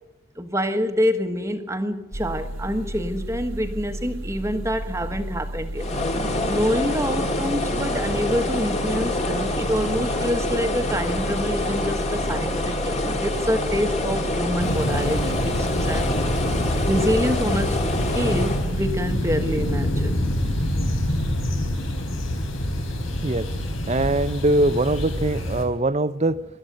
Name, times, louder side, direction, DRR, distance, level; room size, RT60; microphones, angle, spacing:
voice 1, 0.4-5.9 6.5-16.1 16.6-17.8 18.1-20.2, equal, 15° right, 1.3 m, -26 dB
sound 1, 2.1-21.5, equal, 80° right, 1.7 m, -33 dB
sound 2, 5.8-18.7, left 2 dB, 35° left, 2.3 m, -26 dB
sound 3, 14.6-25.6, left 1 dB, 75° left, 4.1 m, -26 dB
voice 2, 23.9-26.4, right 1 dB, 30° right, 0.7 m, -22 dB
23.5 x 13.0 x 9.3 m
head